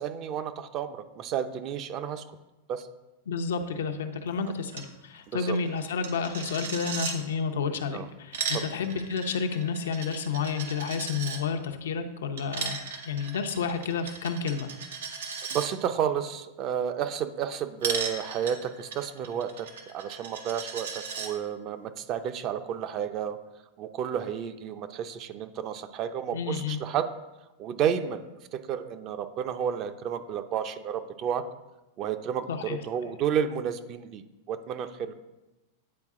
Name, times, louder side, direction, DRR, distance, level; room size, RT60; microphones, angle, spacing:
voice 1, 0.0-2.4 2.7-2.9 5.3-5.6 7.9-8.1 8.5-8.7 15.5-23.4 23.8-27.1 27.6-31.4 32.0-35.1, right 8 dB, 40° right, 10 dB, 0.5 m, -31 dB
voice 2, 3.3-12.8 13.0-14.7 26.3-26.8 32.5-32.8, left 5 dB, 90° left, 5 dB, 0.7 m, -30 dB
Coin (dropping), 4.7-4.9 5.1-5.2 5.5-7.2 8.1-11.4 12.4-15.7 17.8-21.3, right 6 dB, 90° right, 0.9 m, -36 dB
9.6 x 4.1 x 3.7 m, 1.0 s
hypercardioid pair, 130°, 0 cm